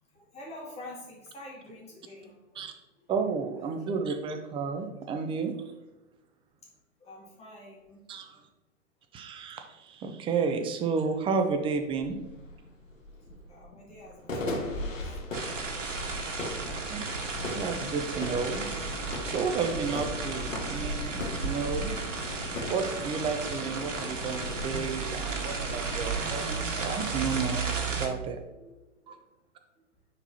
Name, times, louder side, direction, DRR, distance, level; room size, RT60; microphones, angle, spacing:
voice 1, 0.1-2.6 2.9-3.0 5.1-5.2 7.0-8.0 13.3-15.2 15.5-17.2 28.6-28.7 29.0-29.2, left 1 dB, 15° left, -5 dB, 2.4 m, -48 dB
voice 2, 3.1-5.6 8.1-8.4 9.1-12.2 16.9-17.1 17.5-18.7 19.2-21.9 22.7-27.6 27.9-28.4 29.1-29.2, right 5 dB, 15° right, 6 dB, 0.5 m, -32 dB
sound 1, 10.9-11.0 11.3-22.8, left 1 dB, 85° left, 1.6 m, -39 dB
sound 2, 15.3-28.1, right 4 dB, 75° right, 1.5 m, -33 dB
sound 3, 15.7-26.1, left 3 dB, 50° left, 2.3 m, -45 dB
9.7 x 4.5 x 2.8 m, 1.0 s
hypercardioid pair, 115°, 38 cm